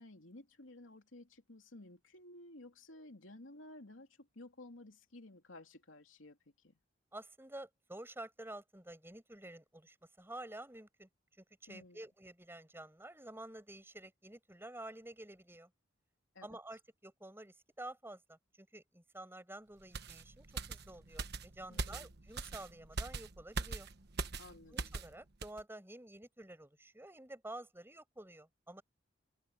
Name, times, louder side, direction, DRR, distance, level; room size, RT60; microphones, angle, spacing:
voice 1, 0.0-6.8 11.7-12.0 16.3-16.5 21.7-22.1 24.4-24.9, left 2 dB, 90° left, 2.9 m, -55 dB
voice 2, 7.1-11.1 11.4-15.7 16.4-23.9 24.7-28.8, right 1 dB, 10° right, 7.8 m, -50 dB
sound 1, 19.9-25.1 25.4-25.6, right 3 dB, 60° right, 1.2 m, -42 dB
head